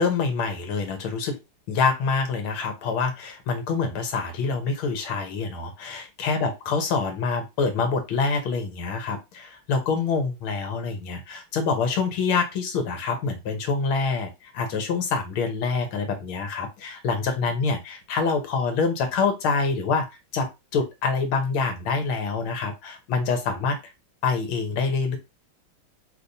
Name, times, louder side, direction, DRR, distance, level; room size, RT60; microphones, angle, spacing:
voice 1, 0.0-1.4 1.7-20.1 20.3-23.8 24.2-25.2, left 4 dB, 80° left, 5 dB, 2.0 m, -26 dB
5.3 x 3.3 x 2.7 m, 0.22 s
omnidirectional pair, 2.3 m